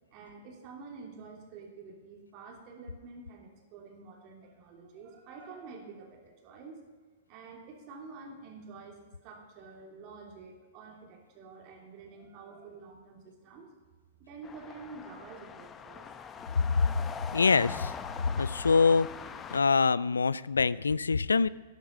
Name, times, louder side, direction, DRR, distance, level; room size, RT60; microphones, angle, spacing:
voice 1, 0.1-6.8 7.3-13.7 14.2-16.2, right 4 dB, 40° right, 1 dB, 3.1 m, -48 dB
sound 1, 14.4-19.6, left 6 dB, 20° left, 0.8 m, -42 dB
voice 2, 17.3-17.9 18.3-19.1 19.5-21.5, left 4 dB, 80° left, 20 dB, 0.3 m, -24 dB
12.5 x 10.5 x 5.3 m, 1.5 s
figure-of-eight pair, 110°, 0 cm